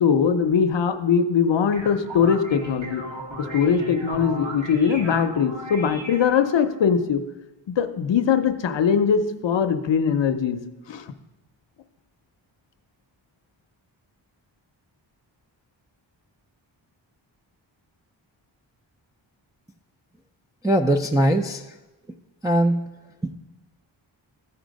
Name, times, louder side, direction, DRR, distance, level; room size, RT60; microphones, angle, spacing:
voice 1, 0.0-3.0 3.5-7.2 7.7-10.6 10.9-11.0, left 7 dB, 65° left, 9 dB, 0.8 m, -21 dB
sound 1, 1.5-6.7, right 1 dB, 75° right, 2.2 m, -36 dB
voice 2, 20.6-21.6 22.4-22.9 23.2-23.3, right 1 dB, 10° right, -1 dB, 0.5 m, -21 dB
13.5 x 4.5 x 5.2 m, 1.0 s
wide cardioid pair, 80°, 46 cm